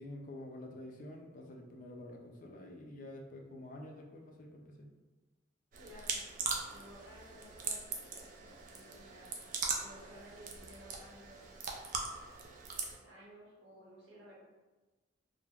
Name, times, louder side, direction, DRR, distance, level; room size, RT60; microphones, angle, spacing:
voice 1, 0.0-4.9, left 1 dB, 40° left, 1 dB, 0.4 m, -48 dB
sound 1, 5.7-13.0, right 4 dB, 40° right, 0.3 m, -41 dB
voice 2, 5.8-6.2 6.7-9.4 9.8-11.6 13.0-14.4, equal, 65° right, -5 dB, 0.8 m, -55 dB
3.2 x 2.0 x 2.3 m, 1.2 s
head